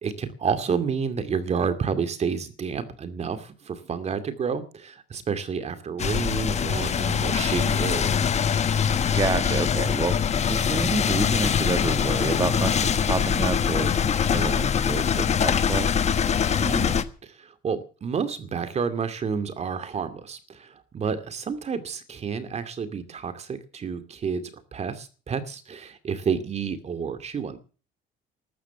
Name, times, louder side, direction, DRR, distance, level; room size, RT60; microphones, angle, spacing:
voice 1, 0.0-8.2 16.6-27.6, right 6 dB, 40° right, 11 dB, 2.4 m, -30 dB
sound 1, 6.0-17.0, left 7 dB, 40° left, 1.3 m, -23 dB
voice 2, 9.1-10.2 10.5-14.0 14.2-15.9, right 3 dB, 25° right, 8 dB, 1.6 m, -29 dB
14.0 x 13.0 x 7.0 m, 0.38 s
cardioid pair, 110°, 17 cm